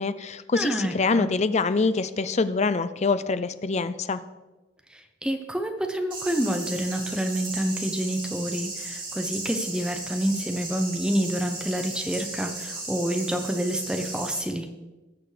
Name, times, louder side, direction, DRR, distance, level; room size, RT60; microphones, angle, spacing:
voice 1, 0.0-4.2, left 4 dB, 35° left, 13 dB, 0.5 m, -25 dB
voice 2, 0.5-1.3 4.9-14.7, right 1 dB, 5° right, 5 dB, 0.8 m, -28 dB
sound 1, 6.1-14.4, right 2 dB, 30° right, 4.4 m, -36 dB
19.5 x 7.1 x 3.3 m, 1.1 s
head